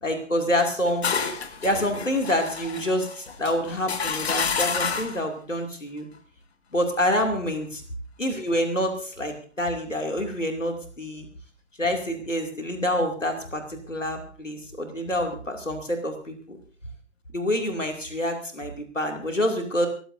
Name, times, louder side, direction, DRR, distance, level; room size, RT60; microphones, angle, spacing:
voice 1, 0.0-1.1 1.6-6.1 6.7-7.8 8.2-11.3 11.8-16.6 17.3-19.9, equal, 90° left, 4 dB, 2.6 m, -27 dB
sound 1, 0.6-5.3, left 6 dB, 60° left, 1.7 m, -29 dB
25.0 x 15.0 x 2.6 m, 0.40 s
figure-of-eight pair, 125°, 37 cm